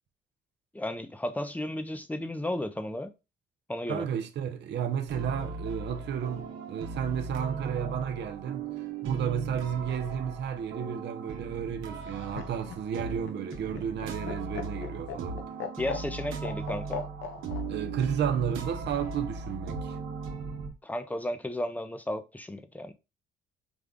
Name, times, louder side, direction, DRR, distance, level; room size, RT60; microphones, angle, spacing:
voice 1, 0.7-3.1 3.7-4.1 15.8-17.0 20.8-22.9, left 1 dB, 10° left, 0.6 m, -34 dB
voice 2, 3.9-8.7 9.0-15.4 17.7-20.0, right 8 dB, 60° right, 0.7 m, -32 dB
sound 1, 5.1-20.7, right 4 dB, 90° right, 0.9 m, -38 dB
Laughter, 11.9-17.6 18.9-19.6, left 6 dB, 75° left, 0.8 m, -39 dB
5.2 x 2.3 x 3.6 m
cardioid pair, 90°, 20 cm